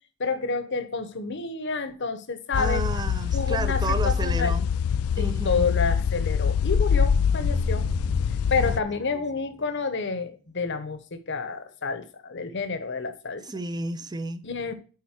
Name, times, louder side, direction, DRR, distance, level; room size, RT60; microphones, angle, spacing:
voice 1, 0.2-3.0 3.3-4.5 5.2-7.9 8.5-13.4 14.4-14.7, left 4 dB, 55° left, 1.0 m, -29 dB
sound 1, 2.5-8.8, left 7 dB, 85° left, 0.3 m, -24 dB
voice 2, 2.6-4.7 5.1-5.7 8.6-8.8 9.1-9.2 13.4-14.5, right 3 dB, 20° right, 0.5 m, -32 dB
sound 2, 7.4-9.8, equal, ahead, 0.9 m, -36 dB
9.7 x 4.1 x 4.4 m
head